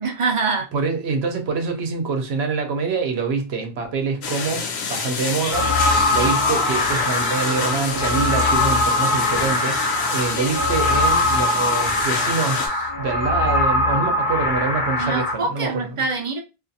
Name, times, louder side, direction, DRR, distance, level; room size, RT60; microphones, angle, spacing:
voice 1, 0.0-0.7 6.2-6.4 15.0-16.4, right 4 dB, 35° right, 0.6 m, -25 dB
voice 2, 0.7-5.7 6.1-16.0, right 4 dB, 80° right, 0.9 m, -25 dB
sound 1, 4.2-12.7, left 5 dB, 90° left, 0.9 m, -28 dB
sound 2, 5.5-15.3, left 2 dB, 55° left, 1.0 m, -21 dB
2.4 x 2.4 x 2.6 m
omnidirectional pair, 1.1 m